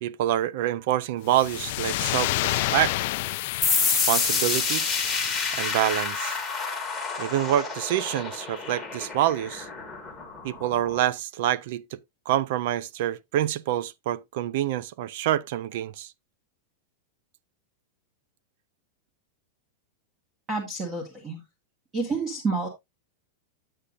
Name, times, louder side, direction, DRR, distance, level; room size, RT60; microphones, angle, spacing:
voice 1, 0.0-2.9 3.9-4.9 5.5-6.4 7.2-9.7 10.4-12.0 12.3-16.1, right 12 dB, 50° right, 0.4 m, -26 dB
sound 1, 1.3-6.2, left 18 dB, 45° left, 0.4 m, -30 dB
sound 2, 3.6-11.0, left 4 dB, ahead, 1.6 m, -29 dB
voice 2, 20.5-21.4 21.9-22.7, right 3 dB, 15° right, 1.4 m, -29 dB
8.9 x 8.4 x 2.5 m
supercardioid pair, 175°, 0 cm